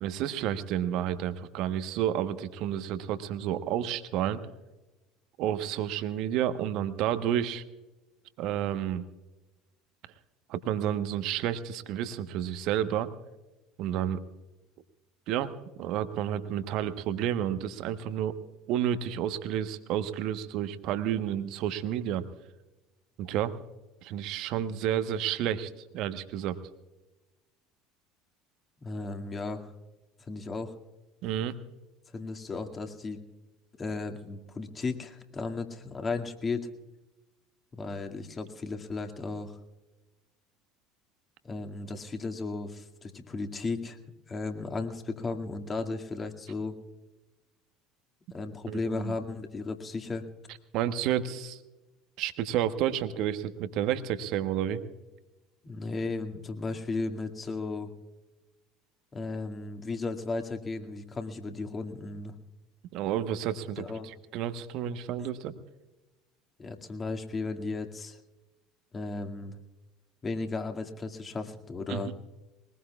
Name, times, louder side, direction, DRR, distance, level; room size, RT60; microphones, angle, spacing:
voice 1, 0.0-4.4 5.4-7.6 8.4-9.0 10.5-13.1 13.8-14.2 15.3-15.5 15.8-18.4 18.7-22.3 23.2-23.5 24.0-26.6 31.2-31.5 48.7-49.1 50.7-51.6 52.2-54.8 62.9-65.5 71.9-72.0, right 10 dB, 55° right, 11 dB, 1.1 m, -30 dB
voice 2, 28.8-29.7 30.3-30.7 32.1-33.2 33.8-36.7 37.7-39.6 41.4-44.0 44.3-46.8 48.3-50.2 55.6-57.9 59.1-62.3 63.8-64.1 66.6-68.2 68.9-69.6 70.2-72.1, left 3 dB, 30° left, 5 dB, 2.1 m, -35 dB
22.0 x 20.5 x 2.4 m, 1.1 s
figure-of-eight pair, 65°, 0 cm